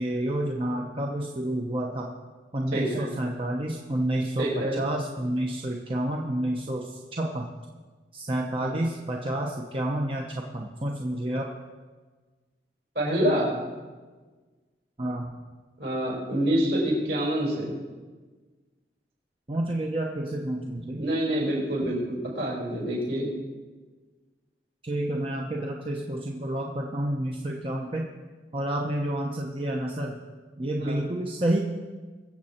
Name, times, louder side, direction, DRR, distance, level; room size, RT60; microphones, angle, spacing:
voice 1, 0.0-2.1 2.5-7.5 8.1-11.5 15.0-15.3 19.5-21.0 24.8-28.1 28.5-30.2 30.6-31.6, right 1 dB, 30° right, 0 dB, 0.9 m, -29 dB
voice 2, 2.7-3.1 4.4-4.8 8.6-8.8 12.9-13.5 15.8-17.7 21.0-23.3 30.8-31.0, right 1 dB, 65° right, -4 dB, 5.0 m, -27 dB
22.5 x 7.6 x 4.3 m, 1.4 s
head